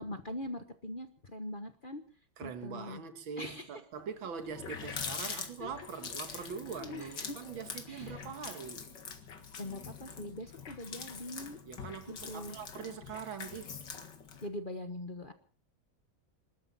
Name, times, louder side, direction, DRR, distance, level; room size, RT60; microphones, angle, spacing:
voice 1, 0.0-2.0 2.4-3.0 3.4-3.8 5.2-5.7 6.3-6.5 6.8-7.3 7.9-8.2 9.6-11.6 12.1-12.6 14.4-15.3, left 1 dB, 30° left, 1.2 m, -42 dB
voice 2, 2.4-8.8 11.7-13.7, right 6 dB, 75° right, 2.2 m, -43 dB
Water tap faucet, 4.0-4.1 4.4-14.5, left 6 dB, 60° left, 2.4 m, -44 dB
26.0 x 13.5 x 4.1 m
omnidirectional pair, 2.2 m